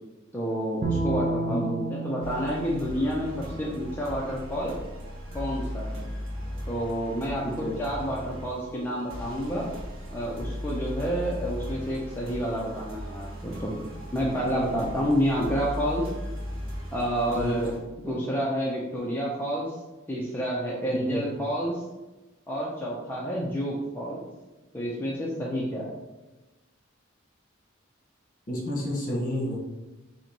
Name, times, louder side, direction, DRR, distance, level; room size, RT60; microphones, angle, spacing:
voice 1, 0.3-4.7 5.3-6.1 6.7-9.7 10.1-13.7 14.1-16.1 16.9-17.7 18.0-19.7 20.1-21.8 22.5-24.2 24.7-25.9, equal, 10° left, -5 dB, 0.5 m, -29 dB
Bowed string instrument, 0.8-4.1, right 3 dB, 40° right, 0.6 m, -32 dB
sound 1, 2.2-17.8, equal, 70° right, 1.2 m, -37 dB
voice 2, 7.4-7.7 14.7-14.8 17.3-17.5 20.9-21.3 28.5-29.5, equal, 40° left, -2 dB, 1.3 m, -30 dB
4.0 x 2.9 x 4.4 m, 1.1 s
head